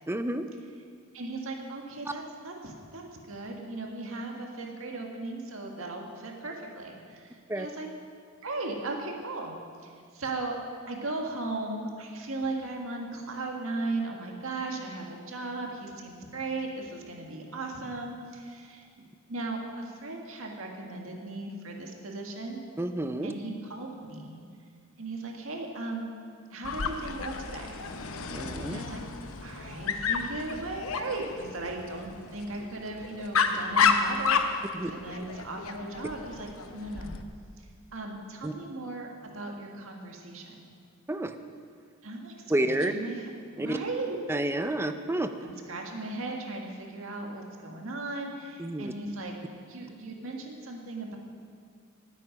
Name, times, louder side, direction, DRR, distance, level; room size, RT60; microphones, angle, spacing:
voice 1, 0.1-0.4 7.5-7.7 22.8-23.3 28.3-28.8 34.7-34.9 38.4-38.5 41.1-41.3 42.5-42.9 43.6-43.8 44.3-45.3 48.6-48.9, right 1 dB, 10° right, 8 dB, 0.5 m, -29 dB
voice 2, 1.1-7.9 8.4-9.6 9.8-10.6 10.9-18.9 19.3-22.6 23.2-24.4 25.0-26.1 26.5-27.8 28.7-29.0 29.4-37.1 37.6-37.7 37.9-40.6 42.0-44.2 45.4-49.3 49.6-51.2, right 2 dB, 75° right, 1 dB, 1.9 m, -37 dB
Dog, 26.6-37.2, left 5 dB, 85° left, 0.8 m, -31 dB
18.5 x 8.4 x 5.2 m, 2.1 s
head